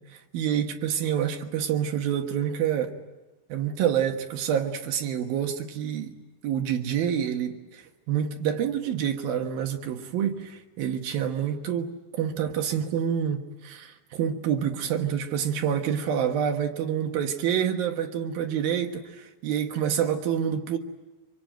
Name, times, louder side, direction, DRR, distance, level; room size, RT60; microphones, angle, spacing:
voice 1, 0.1-2.9 3.5-6.1 6.4-20.8, right 9 dB, 70° right, 3.1 m, -27 dB
25.0 x 24.5 x 9.2 m
omnidirectional pair, 4.5 m